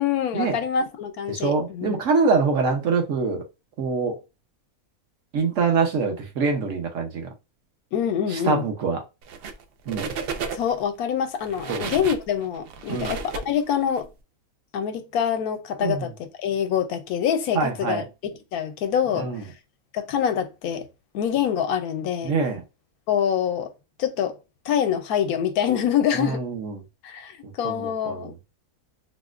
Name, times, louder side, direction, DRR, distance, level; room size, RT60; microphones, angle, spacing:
voice 1, 0.0-2.0 7.9-8.7 10.5-14.1 14.7-19.5 19.9-20.9 21.1-22.3 23.1-23.7 24.0-24.3 24.6-26.4 27.0-28.3, left 8 dB, 80° left, 1.1 m, -25 dB
voice 2, 1.3-3.4 3.8-4.2 5.3-7.3 8.3-9.0 9.9-10.1 11.7-11.9 12.9-13.1 15.8-16.1 17.5-18.0 19.2-19.4 22.2-22.6 26.1-26.8 27.6-28.3, right 4 dB, 65° right, 1.0 m, -24 dB
sound 1, 9.2-9.6 9.9-10.8 11.4-14.0, right 5 dB, 85° right, 0.5 m, -33 dB
4.1 x 2.1 x 2.4 m
omnidirectional pair, 1.6 m